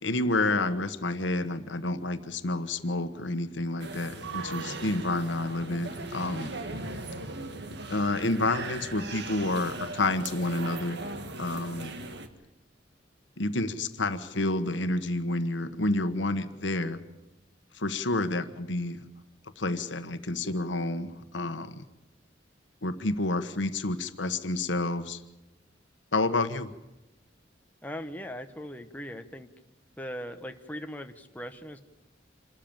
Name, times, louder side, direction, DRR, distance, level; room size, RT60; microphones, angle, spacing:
voice 1, 0.0-6.5 7.9-11.0 11.4-12.0 13.4-17.0 17.7-19.1 19.6-21.8 22.8-25.2 26.1-26.7, left 2 dB, 70° left, 10 dB, 1.3 m, -29 dB
sound 1, 3.8-12.3, right 3 dB, 65° right, 1.8 m, -38 dB
voice 2, 27.8-29.5 30.0-31.8, equal, 10° left, 5 dB, 1.1 m, -39 dB
27.0 x 13.5 x 8.9 m, 0.98 s
head